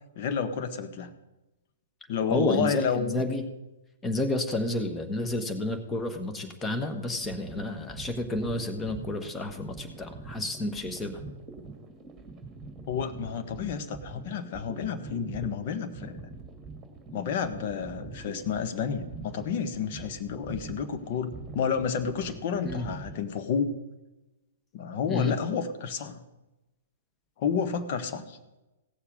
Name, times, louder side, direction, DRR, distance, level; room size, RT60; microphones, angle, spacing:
voice 1, 0.1-1.1 2.1-3.2 12.9-16.2 17.1-23.7 24.7-26.2 27.4-28.4, left 6 dB, 45° left, 8 dB, 1.3 m, -30 dB
voice 2, 2.3-3.4 4.0-11.2 22.6-22.9 25.1-25.4, left 2 dB, 15° left, 6 dB, 1.4 m, -30 dB
sound 1, 7.1-23.2, right 3 dB, 15° right, 2.2 m, -44 dB
16.5 x 7.1 x 5.3 m, 1.0 s
figure-of-eight pair, 115°, 0 cm